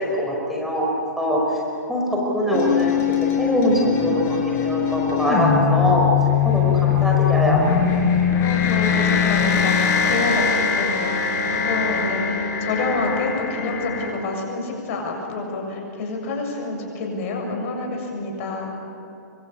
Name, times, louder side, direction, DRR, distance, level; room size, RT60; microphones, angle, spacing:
voice 1, 0.0-1.4 1.9-2.0 2.3-3.0 3.4-6.1 6.4-7.7, equal, ahead, -3 dB, 5.1 m, -22 dB
sound 1, 2.5-14.1, left 7 dB, 30° left, 6.3 m, -21 dB
voice 2, 8.4-18.7, left 3 dB, 45° left, 2 dB, 7.1 m, -28 dB
25.0 x 24.5 x 8.6 m, 2.7 s
hypercardioid pair, 125°, 10 cm